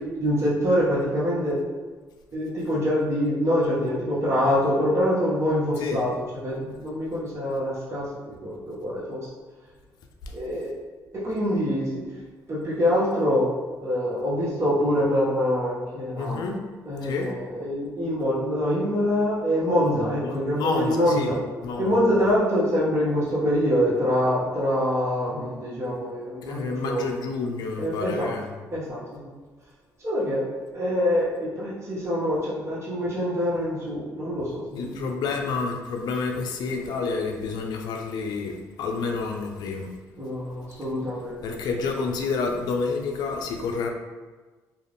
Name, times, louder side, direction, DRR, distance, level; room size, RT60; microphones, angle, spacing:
voice 1, 0.2-1.6 2.3-6.1 6.4-9.2 10.3-10.7 11.1-12.0 12.5-13.5 13.8-16.4 16.9-21.4 21.8-27.1 27.8-28.3 28.7-29.0 30.0-30.4 30.7-35.0 40.2-41.4, equal, 40° right, -8 dB, 0.9 m, -25 dB
voice 2, 5.8-6.1 16.2-16.6 17.0-17.3 20.2-22.0 26.4-28.5 34.8-39.9 41.4-43.9, left 4 dB, 70° left, 3 dB, 0.4 m, -29 dB
2.3 x 2.3 x 3.4 m, 1.3 s
supercardioid pair, 65°, 7 cm